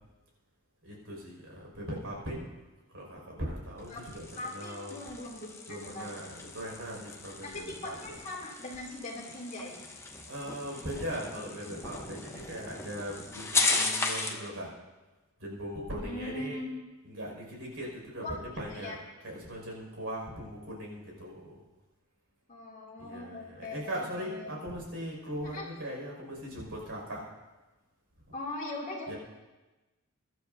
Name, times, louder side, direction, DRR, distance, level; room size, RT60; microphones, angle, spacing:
voice 1, 0.8-2.5 2.9-5.0 5.7-8.3 10.3-14.7 15.4-16.6 17.0-21.6 23.0-27.2 29.1-29.2, equal, 70° right, -2 dB, 5.8 m, -39 dB
sound 1, 3.8-14.5, left 3 dB, 10° left, 0.9 m, -36 dB
voice 2, 4.4-6.1 7.5-9.7 13.6-13.8 14.3-14.6 16.0-16.7 18.2-19.0 22.5-24.5 25.4-25.7 28.3-29.1, left 2 dB, 35° left, -3 dB, 2.9 m, -41 dB
23.5 x 12.5 x 2.7 m, 1.1 s
head